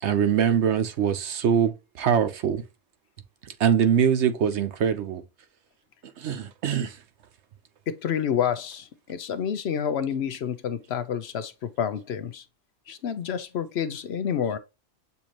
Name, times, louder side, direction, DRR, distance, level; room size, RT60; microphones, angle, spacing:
voice 1, 0.0-2.6 3.4-5.2 6.2-7.0, right 8 dB, 70° right, 1.0 m, -23 dB
voice 2, 7.9-12.4 12.9-14.6, left 8 dB, 65° left, 0.8 m, -29 dB
6.9 x 2.7 x 2.9 m
omnidirectional pair, 1.3 m